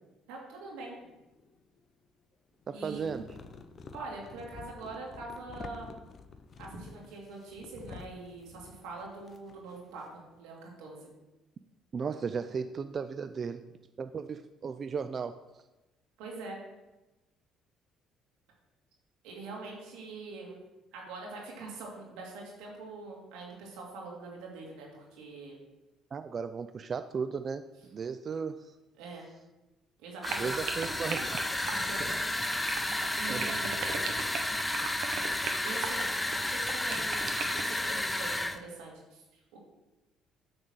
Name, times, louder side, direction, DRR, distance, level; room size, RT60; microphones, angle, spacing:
voice 1, 0.3-1.0 2.7-3.0 3.9-5.9 6.6-11.1 16.2-16.6 19.2-20.6 20.9-25.6 29.0-29.3 30.0-30.6 31.6-32.2 33.2-34.0 35.6-36.2 36.5-39.6, right 3 dB, 90° right, -2 dB, 2.5 m, -44 dB
sound 1, 1.0-1.9 2.6-10.4, left 4 dB, 45° left, 0.7 m, -50 dB
voice 2, 2.7-3.4 11.9-13.7 14.0-15.4 26.1-28.7 30.4-31.3 32.0-32.1 33.3-33.5, right 5 dB, 40° right, 10 dB, 0.4 m, -35 dB
sound 2, 30.2-38.6, left 1 dB, 10° left, 0.6 m, -32 dB
sound 3, 30.2-37.8, right 7 dB, 70° right, 1.0 m, -37 dB
8.9 x 4.0 x 6.3 m, 1.0 s
supercardioid pair, 85°, 0 cm